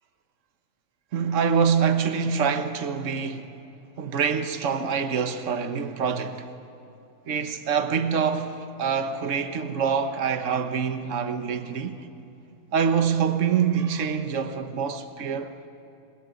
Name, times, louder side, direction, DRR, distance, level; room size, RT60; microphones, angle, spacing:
voice 1, 1.1-3.4 4.0-6.5 7.3-12.0 12.7-15.7, right 6 dB, 60° right, 1.5 m, -25 dB
28.5 x 22.0 x 9.1 m
omnidirectional pair, 1.5 m